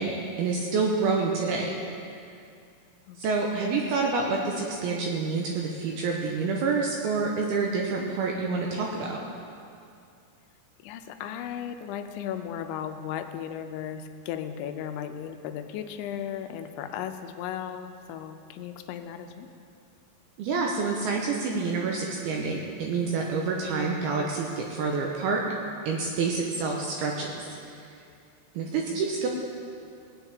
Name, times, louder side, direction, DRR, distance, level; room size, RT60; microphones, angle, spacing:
voice 1, 0.0-1.7 3.2-9.2 20.4-25.4 25.9-27.5 28.5-29.3, right 4 dB, 75° right, -1 dB, 2.4 m, -28 dB
voice 2, 10.8-19.5 28.6-29.0, left 9 dB, 85° left, 7 dB, 3.0 m, -36 dB
18.5 x 9.0 x 3.5 m, 2.4 s
omnidirectional pair, 5.3 m